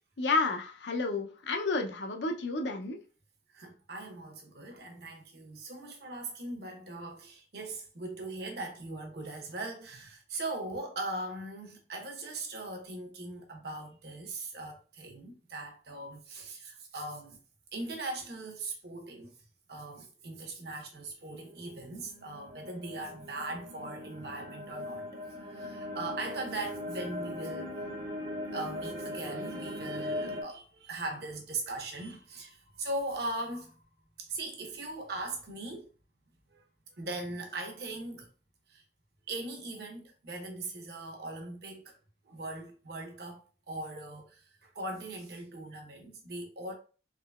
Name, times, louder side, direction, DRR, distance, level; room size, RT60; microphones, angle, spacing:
voice 1, 0.2-3.0, left 3 dB, 75° left, 0.6 m, -31 dB
voice 2, 3.5-17.4 17.7-19.3 19.7-25.1 25.4-27.8 28.5-33.9 34.2-35.9 36.5-36.6 36.9-38.3 38.7-38.8 39.3-42.0 42.2-46.7, right 2 dB, 60° right, 0.9 m, -40 dB
sound 1, 21.7-30.4, left 1 dB, 30° right, 0.6 m, -39 dB
3.7 x 3.0 x 2.3 m
head